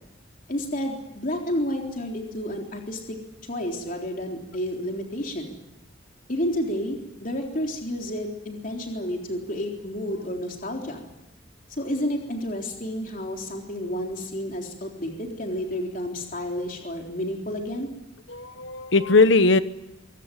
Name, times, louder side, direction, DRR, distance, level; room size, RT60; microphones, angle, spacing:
voice 1, 0.5-3.2 3.5-5.6 6.3-11.1 11.8-17.9, equal, 45° left, 1 dB, 3.7 m, -30 dB
voice 2, 18.3-19.6, left 3 dB, 70° left, 13 dB, 1.1 m, -19 dB
24.0 x 17.5 x 9.8 m, 0.92 s
head